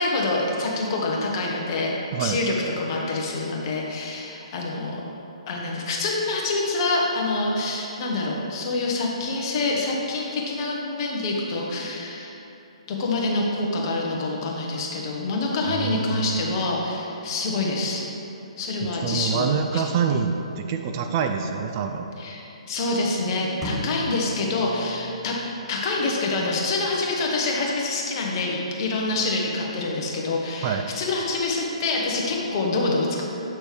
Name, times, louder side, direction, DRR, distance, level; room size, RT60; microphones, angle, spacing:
voice 1, 0.0-1.9 2.2-5.0 5.5-12.3 12.9-18.0 18.6-19.4 19.7-19.8 22.2-25.4 25.7-33.2, left 2 dB, 35° left, -2 dB, 1.2 m, -26 dB
voice 2, 15.7-16.5 19.0-22.1 30.6-30.9, right 6 dB, 30° right, 5 dB, 0.4 m, -26 dB
sound 1, 23.6-25.6, equal, ahead, 0.7 m, -35 dB
8.1 x 6.0 x 3.4 m, 2.8 s
figure-of-eight pair, 130°, 4 cm